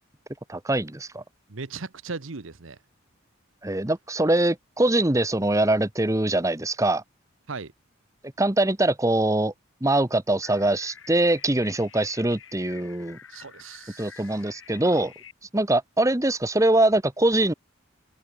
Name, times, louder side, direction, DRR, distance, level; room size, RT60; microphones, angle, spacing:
voice 1, 0.5-1.2 3.6-7.0 8.4-9.5 9.8-13.2 14.0-15.1 15.5-17.5, right 1 dB, 15° right, 1.0 m, -23 dB
voice 2, 1.5-2.8 7.5-7.7 13.3-14.2, right 4 dB, 80° right, 1.1 m, -37 dB
sound 1, 10.4-15.3, left 7 dB, 75° left, 4.3 m, -48 dB
head